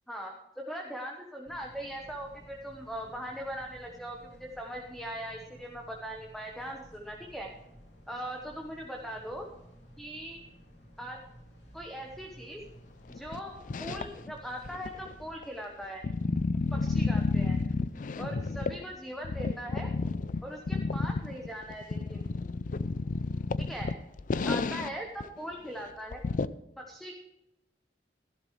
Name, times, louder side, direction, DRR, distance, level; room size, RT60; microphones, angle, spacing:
voice 1, 0.1-7.5 8.1-9.5 10.0-10.4 11.0-11.2 11.7-12.6 13.1-16.0 16.7-17.6 18.2-19.9 20.4-22.2 23.6-23.9 24.4-26.2 26.8-27.1, equal, ahead, 1 dB, 1.1 m, -40 dB
sound 1, 1.5-15.3, equal, 90° left, 3.2 m, -54 dB
sound 2, 13.2-14.3 14.7-18.9 19.2-25.0 25.2-25.3 25.7-25.8 26.1-26.5, left 3 dB, 50° left, 0.4 m, -31 dB
14.5 x 11.5 x 3.2 m, 0.90 s
head